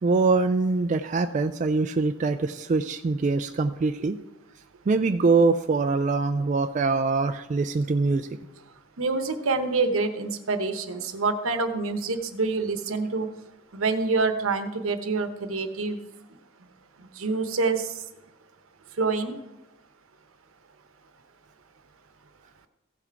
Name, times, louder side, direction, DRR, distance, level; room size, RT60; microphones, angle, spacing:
voice 1, 0.0-4.2 4.9-8.3, right 3 dB, 35° right, 8 dB, 0.3 m, -23 dB
voice 2, 9.0-13.3 13.7-16.0 17.0-17.9 19.0-19.4, right 3 dB, 75° right, 9 dB, 0.9 m, -26 dB
15.5 x 5.9 x 4.6 m, 1.0 s
head